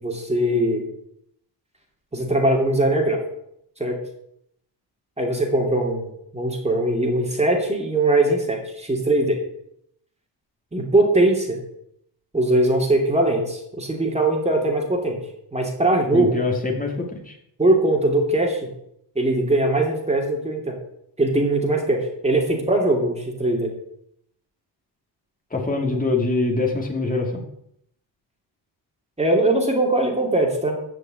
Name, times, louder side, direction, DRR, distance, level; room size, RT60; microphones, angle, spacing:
voice 1, 0.0-0.9 2.1-3.2 3.8-4.0 5.2-9.4 10.7-11.6 12.3-15.2 15.5-16.3 17.6-18.7 19.2-20.8 21.2-23.7 29.2-30.8, right 1 dB, 15° right, 1 dB, 2.6 m, -21 dB
voice 2, 16.1-17.3 25.5-27.4, left 3 dB, 20° left, 1 dB, 2.6 m, -24 dB
15.0 x 5.4 x 8.9 m, 0.74 s
wide cardioid pair, 150°, 43 cm